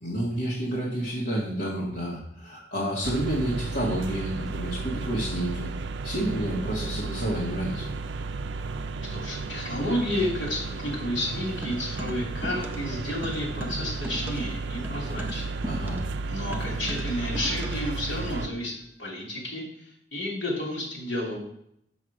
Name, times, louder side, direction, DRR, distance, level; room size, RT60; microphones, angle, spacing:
voice 1, 0.0-5.7 6.0-7.8 15.6-16.0, right 1 dB, 65° left, -7 dB, 1.7 m, -29 dB
sound 1, 3.0-18.5, right 3 dB, 75° right, 0.4 m, -33 dB
voice 2, 9.1-15.4 16.3-18.7 19.0-21.4, left 1 dB, 85° left, -1 dB, 3.0 m, -31 dB
sound 2, 11.6-12.9 13.2-18.0, equal, 10° right, 0.5 m, -38 dB
6.4 x 6.4 x 4.8 m, 0.72 s
head